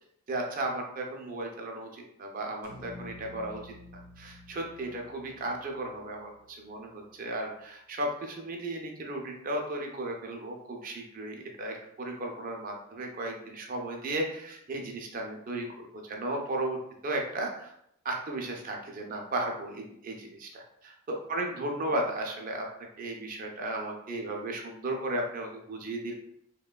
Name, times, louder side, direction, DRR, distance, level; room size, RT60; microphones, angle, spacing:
voice 1, 0.3-3.7 4.2-17.8 18.0-22.7 23.0-26.1, right 1 dB, 40° right, 1 dB, 0.4 m, -35 dB
sound 1, 2.6-6.8, left 1 dB, 75° left, 0.8 m, -50 dB
3.0 x 2.1 x 2.2 m, 0.76 s
head